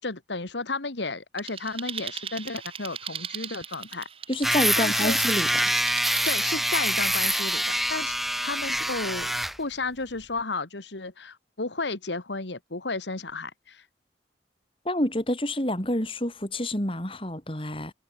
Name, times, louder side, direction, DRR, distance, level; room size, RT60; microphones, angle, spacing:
voice 1, 0.0-4.1 4.8-5.2 6.3-8.2 8.4-9.3 9.6-13.9, left 3 dB, 85° left, 2.0 m, -33 dB
sound 1, 1.4-6.3, right 8 dB, 30° right, 1.6 m, -38 dB
voice 2, 4.3-5.5 14.9-17.9, left 1 dB, 30° left, 4.1 m, -28 dB
sound 2, 4.4-9.6, equal, ahead, 0.4 m, -25 dB
head